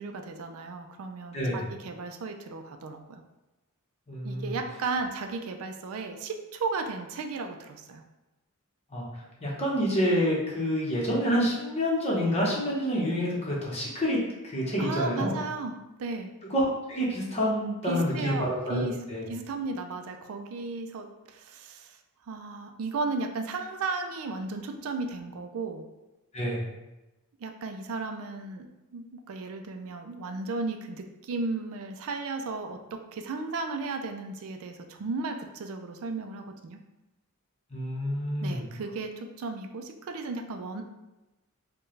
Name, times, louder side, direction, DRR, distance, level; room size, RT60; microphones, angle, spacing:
voice 1, 0.0-3.2 4.2-8.0 14.8-16.3 17.8-19.0 19.3-22.0 22.3-25.8 27.4-28.7 28.9-36.8 38.4-40.8, right 3 dB, 65° right, 5 dB, 0.4 m, -35 dB
voice 2, 1.3-1.6 4.1-4.5 8.9-14.2 14.4-15.4 16.5-19.3 26.3-26.6 37.7-38.6, equal, 30° left, -4 dB, 1.0 m, -28 dB
4.4 x 2.2 x 3.2 m, 1.0 s
head